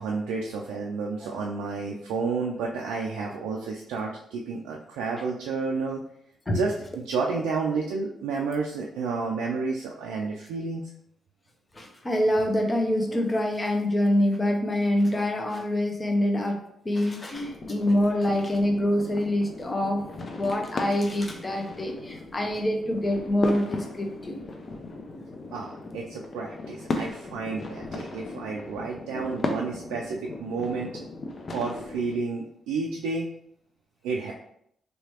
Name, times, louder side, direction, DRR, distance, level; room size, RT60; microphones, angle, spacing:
voice 1, 0.0-6.0 6.5-6.7 7.0-10.8 25.5-31.0 31.5-33.3 34.0-34.3, right 4 dB, 80° right, -1 dB, 0.3 m, -31 dB
voice 2, 11.7-24.4 29.1-29.3, left 1 dB, 30° left, 2 dB, 0.9 m, -26 dB
sound 1, 17.3-32.2, left 2 dB, 50° left, 0.6 m, -37 dB
3.3 x 3.0 x 2.9 m, 0.72 s
hypercardioid pair, 45°, 0 cm